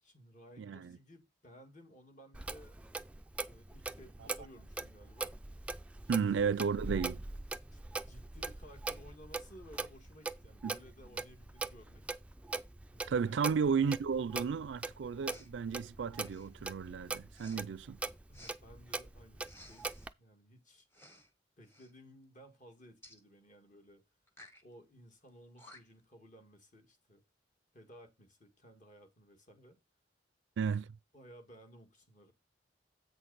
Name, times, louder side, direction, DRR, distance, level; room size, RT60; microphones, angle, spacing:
voice 1, 0.0-2.8 3.4-5.3 7.7-7.8 8.1-12.1 12.9-13.5 18.3-20.9 21.6-24.0 24.6-27.2 27.7-29.8 31.1-32.3, equal, 40° left, 1.9 m, -57 dB
voice 2, 0.6-1.0 6.1-7.2 10.6-10.7 13.1-18.0 30.6-30.9, right 6 dB, 80° right, 0.4 m, -33 dB
Clock, 2.3-20.1, right 3 dB, 5° right, 0.3 m, -42 dB
Respiratory sounds, 15.3-15.5 16.2-16.6 17.3-17.6 18.3-18.6 19.4-20.1 20.9-21.3 21.6-21.9 23.0-23.2 24.3-24.6 25.3-25.4 25.6-26.1, left 1 dB, 15° left, 1.2 m, -56 dB
8.1 x 6.3 x 4.0 m
head